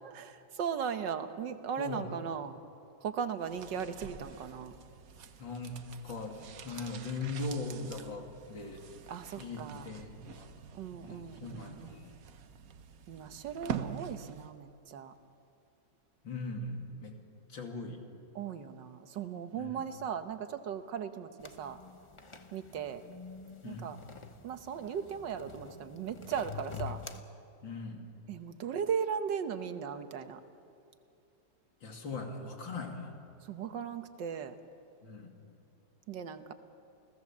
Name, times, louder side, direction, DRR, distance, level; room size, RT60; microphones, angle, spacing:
voice 1, 0.0-2.6 3.0-4.7 9.1-9.9 10.7-12.1 13.1-15.1 18.4-21.8 22.5-23.0 23.6-24.0 24.4-27.0 28.3-30.4 33.4-34.6 36.1-36.5, right 7 dB, 75° right, 9 dB, 1.7 m, -37 dB
voice 2, 1.8-2.1 5.4-8.8 9.4-10.6 11.0-12.1 16.2-17.2 17.5-18.0 19.6-19.8 23.6-23.9 27.6-28.0 31.8-33.1 35.0-35.3, left 3 dB, 85° left, 2 dB, 3.3 m, -40 dB
sound 1, 3.4-14.6 14.9-15.0, right 8 dB, 55° right, 1.2 m, -46 dB
sound 2, 21.4-27.2, left 6 dB, 25° left, 0.6 m, -47 dB
29.0 x 17.0 x 7.3 m, 2.6 s
omnidirectional pair, 2.0 m